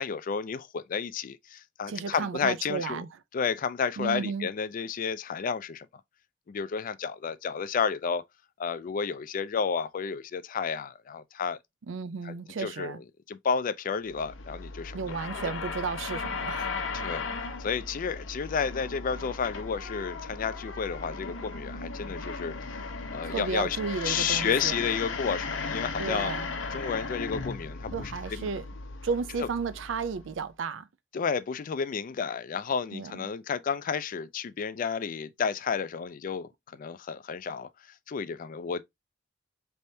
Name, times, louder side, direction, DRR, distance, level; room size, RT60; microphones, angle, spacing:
voice 1, 0.0-3.0 3.3-5.9 6.5-8.2 8.6-11.6 12.2-13.0 13.3-15.1 16.9-17.3 17.6-22.8 23.1-23.8 24.0-26.3 26.7-28.5 31.1-37.7 38.1-38.8, left 6 dB, 45° left, 0.4 m, -31 dB
voice 2, 1.9-3.1 4.0-4.5 11.9-13.0 14.9-16.7 23.2-24.8 26.0-26.5 27.9-28.6 29.0-30.9 32.9-33.3, right 5 dB, 70° right, 0.4 m, -33 dB
sound 1, 14.1-30.4, left 4 dB, 80° left, 0.8 m, -36 dB
4.3 x 3.4 x 2.7 m
head